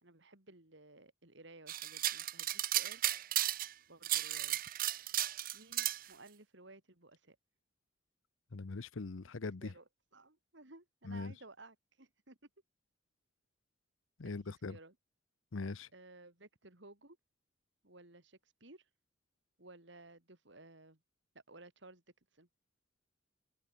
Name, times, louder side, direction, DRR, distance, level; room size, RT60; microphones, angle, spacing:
voice 1, 0.0-3.0 3.9-4.6 5.5-7.4 9.6-12.4 14.2-15.0 15.9-17.2 17.8-18.9 19.6-21.0 21.5-22.0 22.3-22.5, right 2 dB, 60° right, 2.9 m, -57 dB
sound 1, 1.7-3.7 4.0-6.0, right 13 dB, 45° right, 0.7 m, -34 dB
voice 2, 8.5-9.7 11.0-11.3 14.2-14.8 15.5-15.9, left 3 dB, 80° left, 0.8 m, -41 dB
open air
head